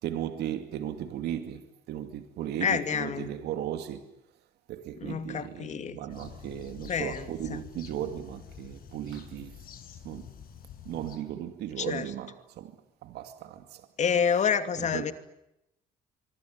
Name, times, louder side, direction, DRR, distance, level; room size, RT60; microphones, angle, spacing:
voice 1, 0.0-4.1 4.7-9.6 10.0-10.3 10.8-12.8 13.0-13.9 14.8-15.1, right 11 dB, 75° right, 2.5 m, -36 dB
voice 2, 2.6-3.3 5.0-6.0 6.9-7.6 11.8-12.1 14.0-15.1, left 7 dB, 45° left, 2.6 m, -28 dB
sound 1, 6.1-11.2, left 8 dB, 60° left, 6.7 m, -48 dB
24.5 x 24.5 x 9.6 m
cardioid pair, 110°, 17 cm